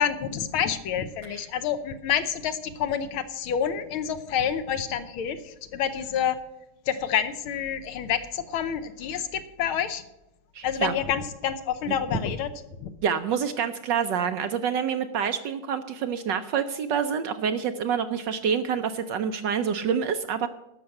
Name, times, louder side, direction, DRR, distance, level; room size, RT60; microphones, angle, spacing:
voice 1, 0.0-6.4 6.9-10.0 10.6-12.5 12.8-12.9, left 8 dB, 75° left, 11 dB, 1.6 m, -28 dB
voice 2, 10.5-10.9 13.0-20.5, right 7 dB, 70° right, 9 dB, 1.1 m, -27 dB
13.0 x 5.8 x 8.2 m, 0.92 s
omnidirectional pair, 2.4 m